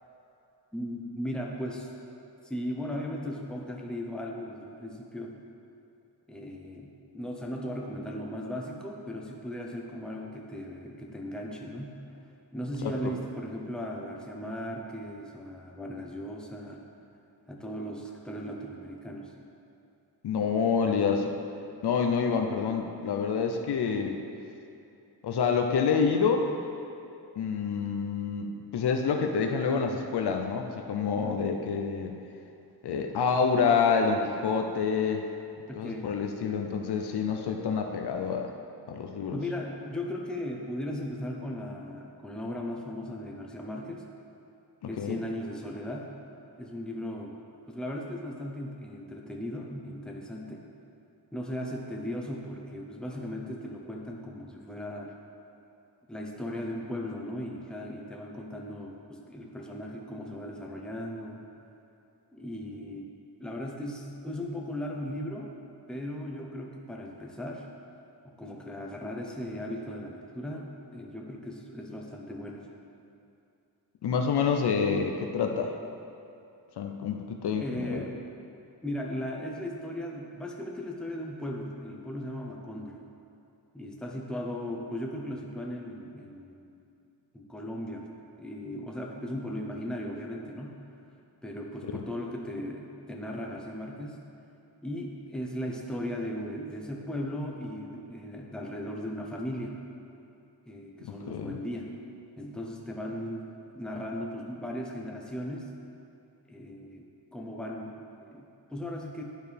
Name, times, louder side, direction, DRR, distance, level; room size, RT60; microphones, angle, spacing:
voice 1, 0.7-1.9 2.4-5.3 6.3-12.0 12.5-16.8 17.5-19.3 35.7-36.1 39.3-44.0 44.9-46.1 46.6-47.3 47.7-50.6 51.3-55.1 56.1-61.4 62.3-63.1 63.4-65.5 65.9-67.7 68.2-72.6 77.5-78.2 78.8-83.0 83.7-86.7 87.3-88.1 88.4-90.8 91.4-94.2 94.8-99.8 100.7-101.9 102.4-103.5 103.7-105.7 106.5-107.1 107.3-107.9 108.2-109.2, left 1 dB, ahead, -1 dB, 0.8 m, -37 dB
voice 2, 20.2-21.3 21.8-24.2 25.2-26.4 27.4-32.2 32.8-35.2 35.8-38.5 38.9-39.4 45.0-45.2 74.0-75.7 76.8-78.0 101.0-101.6, left 6 dB, 65° left, 3 dB, 0.6 m, -27 dB
11.0 x 4.4 x 3.4 m, 2.7 s
cardioid pair, 95°, 42 cm